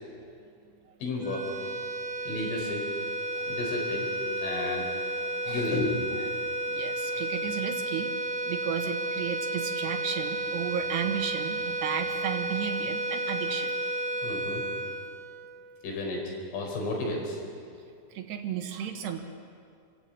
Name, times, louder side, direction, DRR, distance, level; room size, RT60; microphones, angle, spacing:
voice 1, 1.0-1.5 2.2-2.9 3.5-4.1 4.4-4.9 5.4-5.9 14.2-14.6 15.8-17.4, left 2 dB, 85° left, 0 dB, 6.7 m, -32 dB
sound 1, 1.2-15.8, right 1 dB, 40° right, 2.1 m, -32 dB
voice 2, 5.5-5.8 6.3-13.7 16.7-16.8 18.1-19.2, right 8 dB, 70° right, 5 dB, 3.2 m, -34 dB
28.0 x 14.5 x 8.8 m, 2.4 s
omnidirectional pair, 5.5 m